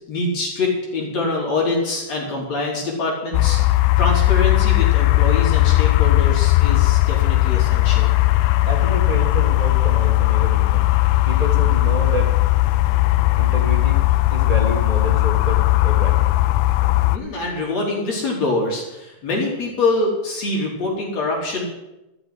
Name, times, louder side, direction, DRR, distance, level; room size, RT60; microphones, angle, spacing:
voice 1, 0.1-3.6 4.0-8.1 17.1-21.6, left 2 dB, 55° left, -2 dB, 4.5 m, -24 dB
sound 1, 3.3-17.2, left 18 dB, 85° left, 2.1 m, -17 dB
voice 2, 8.7-10.9 11.3-12.3 13.4-14.0 14.3-16.2, right 2 dB, 25° right, 1 dB, 0.8 m, -28 dB
13.0 x 6.2 x 9.9 m, 0.95 s
omnidirectional pair, 3.6 m